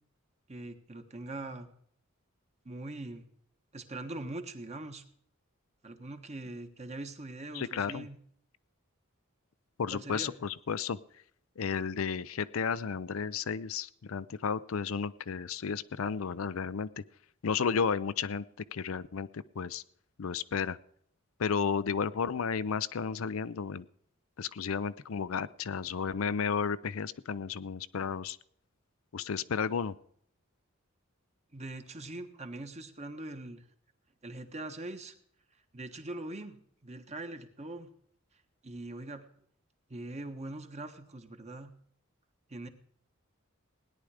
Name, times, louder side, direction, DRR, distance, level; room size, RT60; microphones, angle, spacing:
voice 1, 0.5-1.7 2.6-3.3 3.7-5.0 5.8-8.2 9.9-10.3 31.5-33.6 34.2-35.1 35.7-37.9 38.6-39.2 39.9-41.7 42.5-42.7, right 2 dB, 30° right, 6 dB, 1.3 m, -42 dB
voice 2, 7.5-8.1 9.8-11.0 11.6-17.0 17.4-19.8 20.2-20.8 21.4-23.9 24.4-28.4 29.1-29.9, left 6 dB, 75° left, 15 dB, 0.5 m, -33 dB
17.5 x 10.0 x 4.9 m, 0.66 s
head